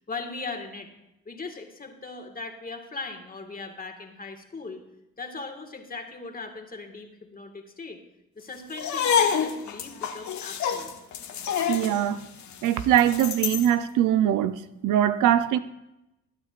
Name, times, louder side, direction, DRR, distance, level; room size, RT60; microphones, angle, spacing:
voice 1, 0.1-0.9 1.3-4.8 5.2-8.0 8.4-10.9, left 3 dB, 30° left, 1.9 m, -39 dB
sound 1, 8.7-13.7, left 7 dB, 70° left, 1.3 m, -27 dB
voice 2, 11.7-12.2 12.6-15.6, right 11 dB, 90° right, 0.7 m, -22 dB
20.0 x 9.6 x 2.5 m
cardioid pair, 90°, 30 cm